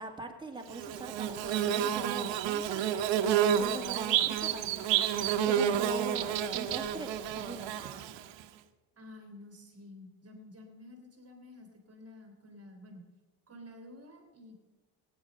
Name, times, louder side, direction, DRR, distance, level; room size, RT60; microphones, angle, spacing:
voice 1, 0.0-8.1, right 3 dB, 10° right, 1 dB, 2.2 m, -43 dB
Bird / Buzz, 0.7-8.4, right 9 dB, 65° right, 1.0 m, -30 dB
voice 2, 9.0-13.1 13.5-14.6, left 1 dB, 30° right, 3 dB, 3.0 m, -51 dB
15.5 x 9.8 x 6.6 m, 1.2 s
cardioid pair, 100°, 48 cm